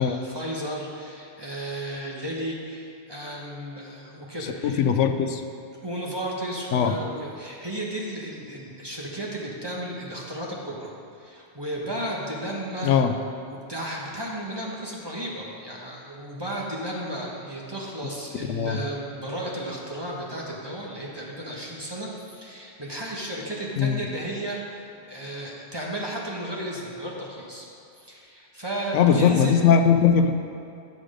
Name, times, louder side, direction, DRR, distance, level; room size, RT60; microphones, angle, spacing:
voice 1, 0.0-4.8 5.8-12.9 13.4-24.8 25.1-27.7 28.0-29.5, right 1 dB, 20° right, -4 dB, 1.2 m, -34 dB
voice 2, 4.6-5.4 6.7-6.9 12.8-13.1 18.5-18.8 23.8-24.0 28.9-30.3, left 7 dB, 80° left, 7 dB, 0.9 m, -20 dB
9.6 x 6.3 x 5.0 m, 2.6 s
omnidirectional pair, 1.2 m